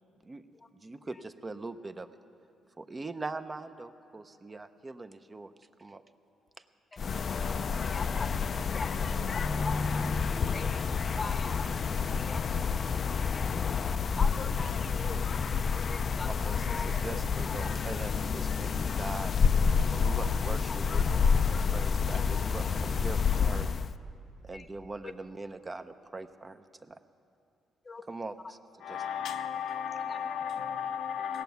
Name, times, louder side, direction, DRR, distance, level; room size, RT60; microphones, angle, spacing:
voice 1, 0.7-2.1 2.8-5.5 5.8-6.0 16.3-19.3 19.9-23.7 24.4-27.0 28.1-28.6 28.9-29.0, right 3 dB, 25° right, 0.5 m, -42 dB
sound 1, 7.0-23.9, left 5 dB, 45° left, 0.4 m, -29 dB
voice 2, 7.9-8.3 8.7-8.9 9.3-10.8 11.1-11.7 12.2-12.9 13.3-13.5 14.2-14.8 15.3-15.4 15.9-16.9 17.4-17.7 24.5-24.7 25.0-25.1 27.8-28.1 30.1-30.2, left 4 dB, 30° left, 0.8 m, -41 dB
voice 3, 28.8-31.4, left 8 dB, 80° left, 0.6 m, -34 dB
17.5 x 7.0 x 9.2 m
cardioid pair, 90°, 0 cm